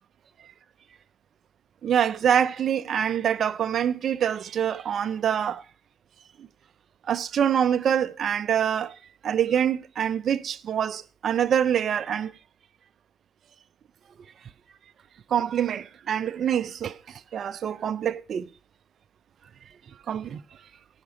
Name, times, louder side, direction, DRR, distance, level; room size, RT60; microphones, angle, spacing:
voice 1, 1.8-5.6 6.4-6.5 7.1-9.0 9.2-12.3 15.3-18.5 20.1-20.4, right 9 dB, 55° right, 0.5 m, -25 dB
18.0 x 5.9 x 5.1 m
cardioid pair, 80°, 0 cm